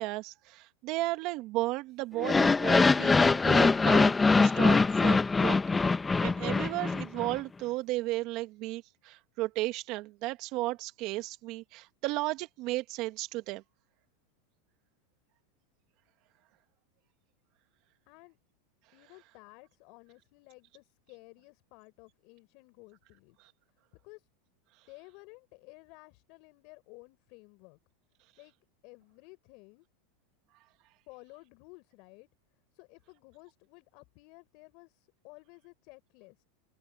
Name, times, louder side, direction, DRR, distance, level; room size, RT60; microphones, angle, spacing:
voice 1, 0.0-5.6 6.2-13.6 23.4-23.5, right 19 dB, 50° right, 1.7 m, -34 dB
sound 1, 2.2-7.4, left 4 dB, 15° left, 1.0 m, -23 dB
voice 2, 18.1-18.4 18.9-23.4 24.0-24.3 24.9-27.8 28.4-28.5 28.8-29.9 31.1-32.3 32.7-36.4, left 28 dB, 55° left, 5.4 m, -54 dB
open air
hypercardioid pair, 120°, 0 cm